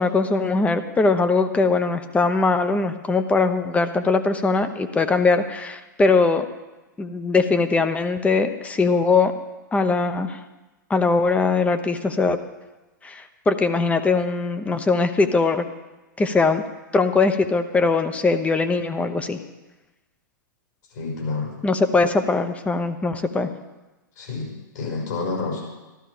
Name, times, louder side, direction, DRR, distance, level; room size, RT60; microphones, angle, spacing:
voice 1, 0.0-6.4 7.0-9.3 9.7-10.4 10.9-12.4 13.0-15.7 16.2-16.6 16.9-19.4 21.6-23.5, left 3 dB, 10° left, 9 dB, 0.9 m, -21 dB
voice 2, 20.9-21.5 24.2-24.5 24.7-25.6, left 4 dB, 65° left, -1 dB, 6.0 m, -28 dB
14.0 x 12.5 x 5.1 m, 1.1 s
hypercardioid pair, 110°, 11 cm